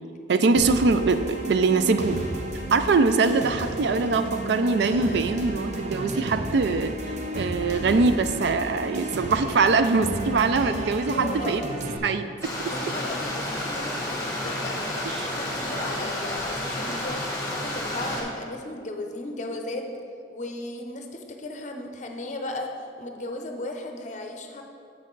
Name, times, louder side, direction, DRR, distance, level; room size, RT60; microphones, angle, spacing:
voice 1, 0.3-2.2 2.7-6.9 7.3-11.6 12.0-12.3 12.6-12.7 15.1-15.3, right 4 dB, 60° right, 10 dB, 0.4 m, -22 dB
sound 1, 0.6-12.0, right 1 dB, 40° right, 0.7 m, -33 dB
voice 2, 11.0-11.5 12.6-17.2 17.5-19.9 20.3-22.7 23.0-24.6, left 2 dB, 40° left, 4 dB, 0.6 m, -35 dB
Stream, 12.4-18.2, left 1 dB, 15° left, 1.2 m, -30 dB
7.4 x 6.4 x 3.9 m, 2.4 s
head